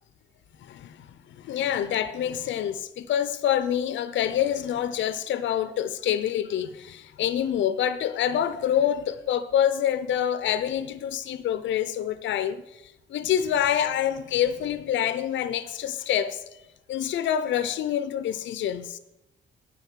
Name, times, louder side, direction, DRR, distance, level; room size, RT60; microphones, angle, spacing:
voice 1, 0.6-12.8 13.1-16.6 16.9-19.0, left 10 dB, 70° left, 0.7 m, -26 dB
10.0 x 5.1 x 7.3 m
cardioid pair, 90°, 20 cm